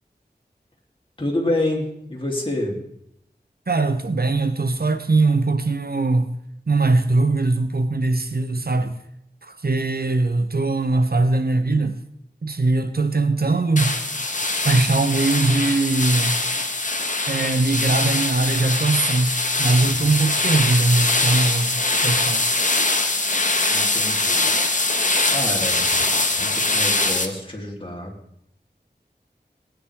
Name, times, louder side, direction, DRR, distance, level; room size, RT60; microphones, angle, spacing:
voice 1, 1.2-2.8 23.7-24.5 24.9-25.9 26.4-28.1, left 1 dB, 30° left, 3.3 m, -28 dB
voice 2, 3.7-6.4 6.7-9.0 9.4-12.0 12.4-14.0 14.6-16.4 17.3-22.6, right 3 dB, 60° right, 0.9 m, -21 dB
sound 1, 13.8-27.3, left 2 dB, 45° left, 1.3 m, -22 dB
20.0 x 9.4 x 3.6 m
wide cardioid pair, 50°, 18 cm